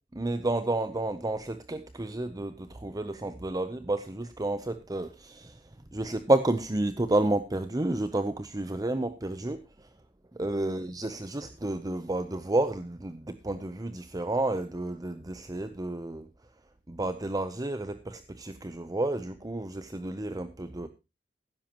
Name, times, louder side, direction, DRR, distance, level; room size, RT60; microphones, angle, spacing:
voice 1, 0.2-5.6 5.9-9.9 10.3-16.3 16.9-20.9, right 2 dB, 20° right, 0.7 m, -31 dB
17.0 x 10.5 x 3.0 m
head